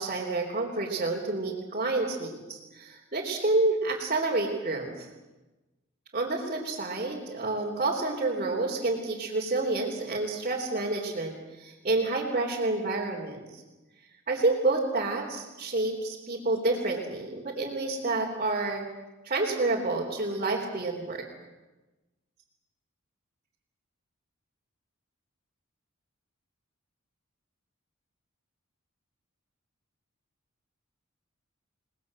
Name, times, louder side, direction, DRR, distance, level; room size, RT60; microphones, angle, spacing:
voice 1, 0.0-5.1 6.1-13.6 14.3-18.9 19.2-21.3, right 2 dB, 35° right, -3 dB, 3.6 m, -29 dB
29.5 x 20.0 x 7.7 m, 1.1 s
head